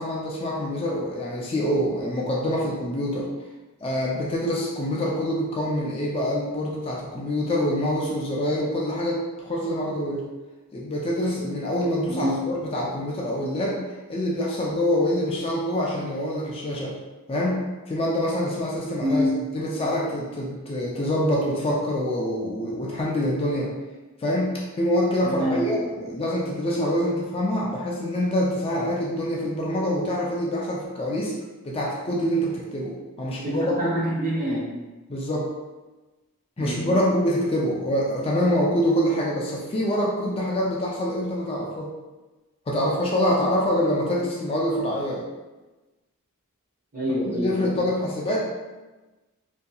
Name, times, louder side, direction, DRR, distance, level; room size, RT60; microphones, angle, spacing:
voice 1, 0.0-3.3 3.8-10.2 10.7-13.8 14.1-16.9 17.3-19.3 19.5-23.7 24.2-31.3 31.6-33.9 35.1-35.5 36.6-41.9 42.7-45.2 47.3-48.5, equal, 25° left, -4 dB, 0.3 m, -25 dB
voice 2, 12.0-12.5 19.0-19.4 25.2-25.7 33.4-34.7 36.6-37.1 46.9-47.8, equal, 40° right, -5 dB, 0.7 m, -26 dB
2.6 x 2.6 x 2.2 m, 1.2 s
head